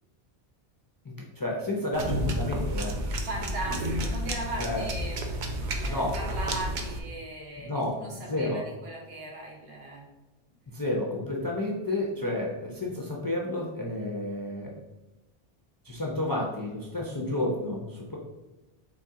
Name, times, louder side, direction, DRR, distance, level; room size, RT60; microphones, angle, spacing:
voice 1, 1.0-3.0 4.6-4.9 5.9-6.2 7.6-7.9 8.3-8.6 10.7-14.7 15.8-18.2, left 1 dB, 30° left, -2 dB, 0.4 m, -31 dB
sound 1, 1.9-7.0, equal, 55° right, 0.7 m, -31 dB
voice 2, 3.3-10.1, right 2 dB, 70° right, -2 dB, 1.3 m, -38 dB
4.1 x 3.2 x 3.6 m, 1.1 s
omnidirectional pair, 1.0 m